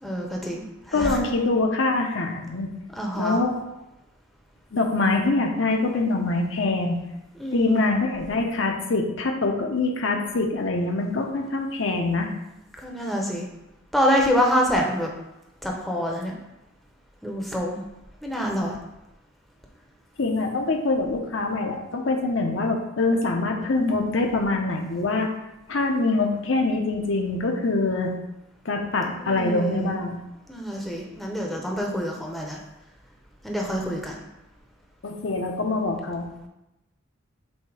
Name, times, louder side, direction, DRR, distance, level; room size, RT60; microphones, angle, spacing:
voice 1, 0.0-1.2 3.0-3.4 7.4-7.9 12.8-13.5 13.9-15.1 15.6-16.3 17.2-17.8 18.2-18.8 29.1-29.9 30.5-32.6 33.4-34.2, equal, ahead, -1 dB, 0.7 m, -26 dB
voice 2, 0.9-2.7 3.2-3.5 4.7-7.0 7.5-12.3 20.2-25.3 25.7-28.1 28.6-30.2 35.0-36.3, left 3 dB, 65° left, 2 dB, 0.8 m, -24 dB
7.2 x 2.8 x 4.8 m, 0.92 s
head